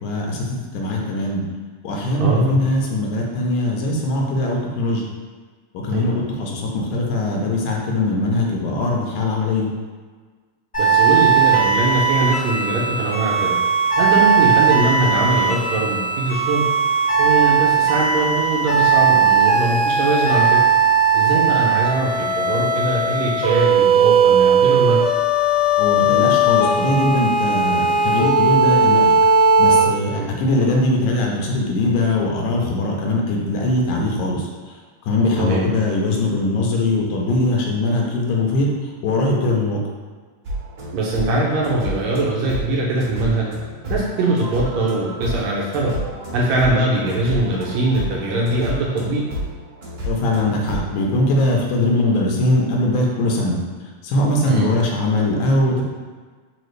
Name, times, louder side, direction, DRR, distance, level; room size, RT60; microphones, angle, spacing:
voice 1, 0.0-1.4 1.8-5.0 5.7-9.7 25.8-29.1 29.6-34.5 35.1-38.7 39.0-39.8 50.0-53.6 54.0-55.8, left 2 dB, 85° left, -1 dB, 2.1 m, -21 dB
voice 2, 2.2-2.6 5.9-6.3 10.8-13.6 14.0-16.7 17.2-20.6 21.1-25.0 30.2-30.3 35.4-35.7 40.9-43.5 43.9-45.9 46.3-49.2 54.5-54.7, right 2 dB, 80° right, -4 dB, 1.8 m, -21 dB
sound 1, 10.7-29.8, right 4 dB, 30° left, 0.5 m, -17 dB
sound 2, 40.4-50.9, right 1 dB, 50° right, 1.5 m, -30 dB
5.0 x 2.4 x 3.1 m, 1.5 s
omnidirectional pair, 3.4 m